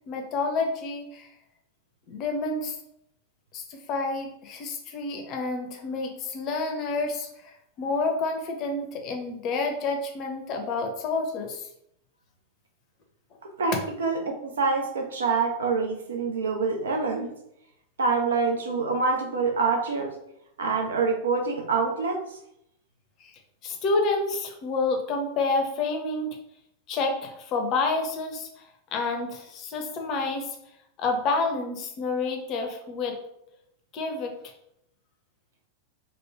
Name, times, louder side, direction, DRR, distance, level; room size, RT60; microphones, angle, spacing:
voice 1, 0.1-1.3 2.1-2.8 3.5-7.5 7.8-11.7 23.2-23.3 23.6-26.4 26.9-28.5 28.9-30.5 31.0-33.2 33.9-34.3, left 3 dB, 35° left, 3 dB, 0.6 m, -29 dB
voice 2, 13.6-17.3 18.0-20.1 20.6-22.4, right 4 dB, 65° right, 3 dB, 0.5 m, -26 dB
3.0 x 2.1 x 3.3 m, 0.78 s
figure-of-eight pair, 90°, 0 cm